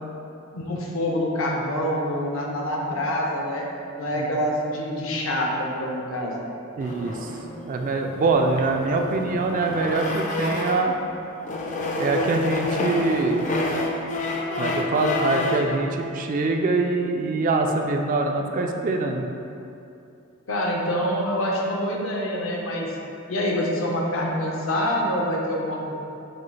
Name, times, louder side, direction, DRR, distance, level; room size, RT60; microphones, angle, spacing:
voice 1, 0.5-3.7 4.0-6.4 20.5-22.9 23.3-25.9, equal, 70° left, -1 dB, 0.7 m, -26 dB
sound 1, 6.8-11.0 11.4-15.7, left 2 dB, 40° left, 0.4 m, -29 dB
voice 2, 6.8-7.3 7.7-10.9 12.0-13.4 14.6-19.3, right 3 dB, 40° right, 3 dB, 0.3 m, -24 dB
6.0 x 2.3 x 3.2 m, 2.7 s
head